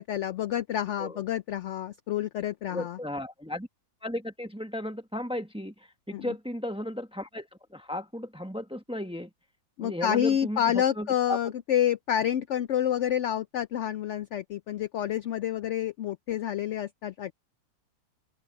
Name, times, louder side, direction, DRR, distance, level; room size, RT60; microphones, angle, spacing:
voice 1, 0.0-3.0 6.1-6.3 9.8-17.3, left 10 dB, 75° left, 0.6 m, -28 dB
voice 2, 2.7-3.7 4.0-5.7 6.1-7.5 7.7-9.3 9.8-11.5, left 1 dB, 5° right, 1.0 m, -35 dB
omnidirectional pair, 1.8 m